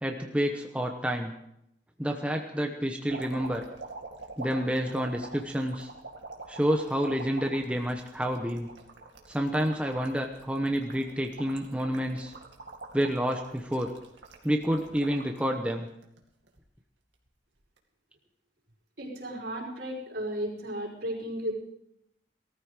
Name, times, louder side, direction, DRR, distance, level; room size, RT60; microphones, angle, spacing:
voice 1, 0.0-1.3 2.0-3.6 4.4-5.9 6.5-8.7 9.3-12.3 12.9-13.9 14.4-15.9, equal, 5° right, 3 dB, 1.0 m, -29 dB
sound 1, 3.1-15.4 15.9-16.6 17.6-17.8, right 3 dB, 85° right, 2.4 m, -45 dB
voice 2, 19.0-21.6, equal, 65° right, -1 dB, 5.2 m, -34 dB
19.5 x 13.5 x 5.0 m, 0.79 s
head